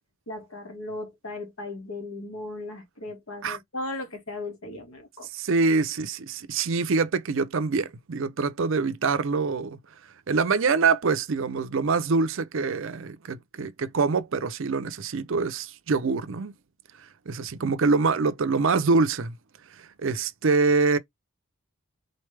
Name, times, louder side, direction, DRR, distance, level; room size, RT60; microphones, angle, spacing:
voice 1, 0.3-5.3, left 2 dB, 75° left, 1.7 m, -37 dB
voice 2, 5.3-9.8 10.3-16.6 17.3-19.4 19.7-21.0, right 4 dB, 60° right, 0.5 m, -25 dB
4.0 x 3.2 x 3.2 m
head